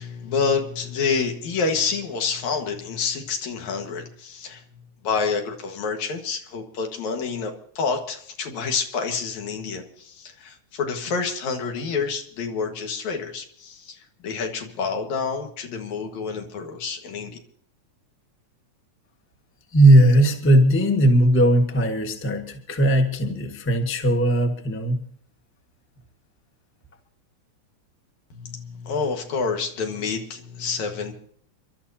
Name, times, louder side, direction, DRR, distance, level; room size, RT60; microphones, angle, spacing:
voice 1, 0.0-4.6 5.0-17.4 28.3-31.1, left 5 dB, 75° left, 4 dB, 3.0 m, -28 dB
voice 2, 19.7-25.0, right 1 dB, 15° left, 4 dB, 0.4 m, -18 dB
29.5 x 12.5 x 2.8 m, 0.62 s
omnidirectional pair, 3.4 m